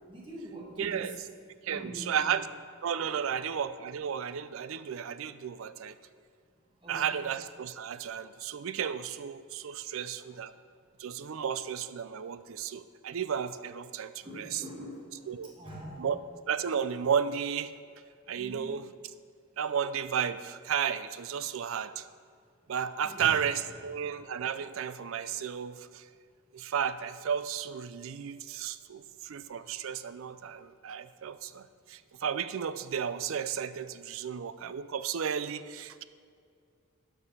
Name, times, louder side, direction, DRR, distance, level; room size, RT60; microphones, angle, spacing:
voice 1, 0.1-1.2 1.7-2.4 3.2-3.6 6.8-7.3 9.6-10.4 14.2-16.1 18.3-18.8 23.0-23.4 23.7-23.8, right 1 dB, 25° right, -3 dB, 1.7 m, -45 dB
voice 2, 0.8-1.2 1.6-2.5 2.8-6.0 6.9-10.5 11.0-14.6 15.3-15.5 16.0-16.2 16.5-17.7 18.3-18.9 19.6-22.1 22.7-26.0 26.5-36.0, right 8 dB, 70° right, 14 dB, 0.4 m, -33 dB
12.0 x 4.8 x 5.6 m, 2.3 s
head